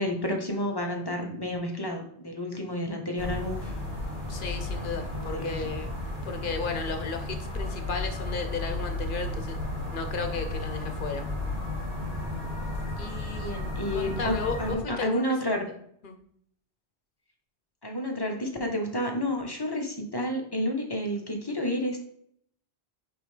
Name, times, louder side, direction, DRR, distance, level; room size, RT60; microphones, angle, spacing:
voice 1, 0.0-3.7 5.1-5.7 13.4-15.7 17.8-22.0, left 1 dB, 25° left, 2 dB, 0.9 m, -30 dB
sound 1, 3.2-14.8, left 2 dB, 45° right, 2.7 m, -33 dB
voice 2, 4.3-5.9 6.2-9.6 9.9-11.2 13.0-13.6 13.9-15.3 16.0-16.1, left 4 dB, 55° left, 6 dB, 1.0 m, -34 dB
8.7 x 3.5 x 3.2 m, 0.67 s
omnidirectional pair, 1.0 m